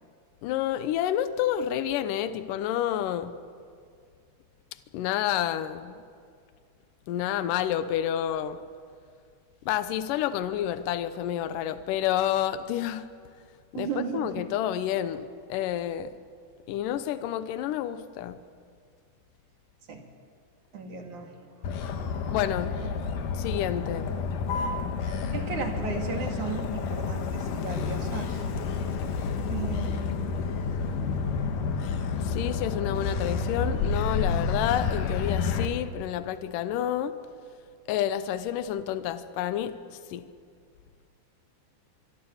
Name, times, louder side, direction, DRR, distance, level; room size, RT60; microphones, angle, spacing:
voice 1, 0.4-3.4 4.9-5.9 7.1-8.6 9.7-13.1 13.7-16.1 16.7-18.4 22.3-22.8 23.4-24.1 32.2-37.2 37.9-39.8 40.1-40.3, left 11 dB, 90° left, 12 dB, 1.8 m, -29 dB
voice 2, 13.7-14.4 19.9-20.0 20.7-21.7 22.8-22.9 25.3-28.4 29.5-30.2, right 6 dB, 50° right, 3 dB, 3.3 m, -35 dB
Motor vehicle (road), 21.6-35.7, left 5 dB, 60° left, 2.5 m, -30 dB
24.5 x 24.0 x 7.2 m, 2.2 s
omnidirectional pair, 5.0 m